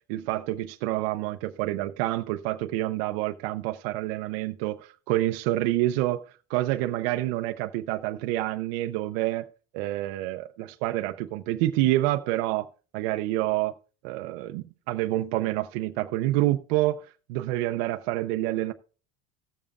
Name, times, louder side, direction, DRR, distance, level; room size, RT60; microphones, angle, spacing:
voice 1, 0.1-6.2 6.5-9.5 9.7-13.7 14.0-17.0 17.3-18.7, right 16 dB, 80° right, 0.7 m, -27 dB
17.0 x 7.0 x 2.4 m
cardioid pair, 135°, 30 cm